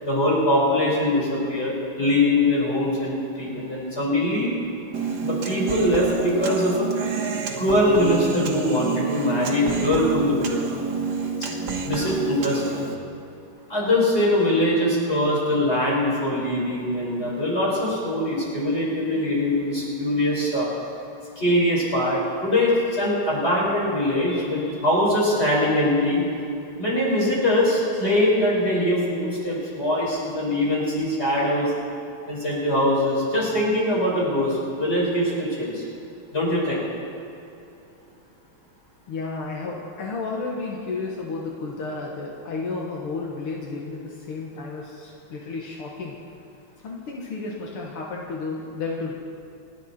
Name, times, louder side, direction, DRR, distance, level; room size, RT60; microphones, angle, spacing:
voice 1, 0.0-4.6 5.2-6.9 7.6-10.6 11.8-12.8 13.7-20.7 21.4-26.2 26.8-31.7 32.3-35.8 36.3-36.8, left 1 dB, 25° left, -5 dB, 5.3 m, -22 dB
Human voice, 4.9-12.9, right 5 dB, 55° right, 1.8 m, -28 dB
voice 2, 39.1-46.2 46.8-49.1, left 3 dB, 80° left, -2 dB, 2.3 m, -32 dB
28.5 x 10.5 x 4.3 m, 2.7 s
omnidirectional pair, 2.4 m